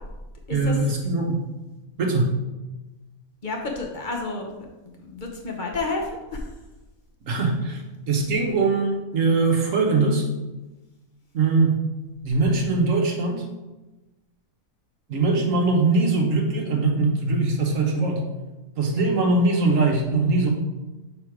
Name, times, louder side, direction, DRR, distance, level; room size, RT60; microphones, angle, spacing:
voice 1, 0.5-1.4 2.0-2.3 7.3-10.2 11.3-11.8 12.2-13.4 15.1-18.3 18.8-20.5, right 3 dB, 65° right, 1 dB, 1.3 m, -21 dB
voice 2, 3.4-4.5 5.0-6.4, left 3 dB, 40° left, 0 dB, 0.9 m, -30 dB
6.1 x 3.8 x 4.7 m, 1.1 s
omnidirectional pair, 1.5 m